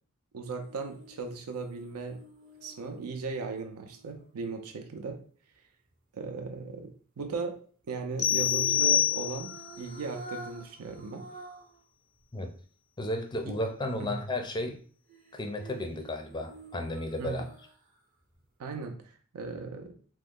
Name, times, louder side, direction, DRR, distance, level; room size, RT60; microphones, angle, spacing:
voice 1, 0.3-2.2 2.6-5.2 6.1-11.3 13.4-13.6 14.0-14.1 17.2-17.4 18.6-19.9, right 4 dB, 90° right, 4 dB, 0.5 m, -37 dB
sound 1, 0.6-4.8 8.4-11.8 12.2-12.3 15.1-18.0 18.3-18.4, right 2 dB, 40° right, 0.6 m, -49 dB
sound 2, 8.2-9.7, left 10 dB, 80° left, 0.6 m, -26 dB
voice 2, 13.0-14.8 15.3-17.5, left 1 dB, 20° left, 4 dB, 0.4 m, -33 dB
3.0 x 2.0 x 3.6 m, 0.43 s
head